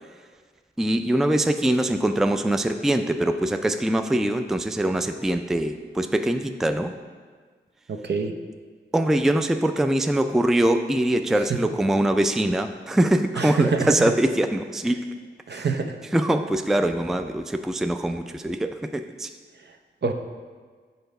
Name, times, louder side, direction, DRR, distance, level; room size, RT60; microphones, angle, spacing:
voice 1, 0.8-6.9 8.9-15.1 15.5-15.7 16.1-19.3, right 1 dB, ahead, 8 dB, 0.4 m, -23 dB
voice 2, 7.9-8.3 13.4-13.9 15.5-15.9 20.0-20.1, right 4 dB, 60° right, 5 dB, 0.6 m, -25 dB
6.7 x 4.0 x 5.3 m, 1.5 s
cardioid pair, 40°, 20 cm